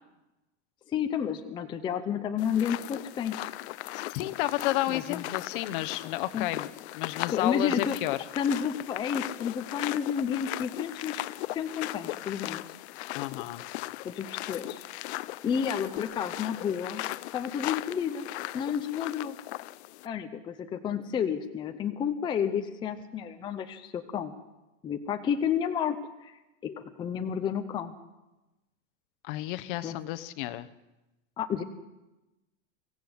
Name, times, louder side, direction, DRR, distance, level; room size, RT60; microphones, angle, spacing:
voice 1, 0.9-3.5 4.9-5.2 6.3-6.5 7.3-8.0 8.3-11.2 11.5-12.6 14.0-14.9 15.4-17.0 17.3-18.3 18.5-19.4 20.0-24.3 24.8-26.3 26.6-27.9 29.8-30.0 31.4-31.6, left 8 dB, 15° left, 6 dB, 0.7 m, -31 dB
sound 1, 2.4-20.1, left 17 dB, 65° left, 0.7 m, -38 dB
voice 2, 3.9-8.2 13.1-13.6 29.2-30.7, left 16 dB, 45° left, 12 dB, 1.1 m, -32 dB
24.0 x 16.5 x 8.0 m, 1.0 s
supercardioid pair, 175°, 36 cm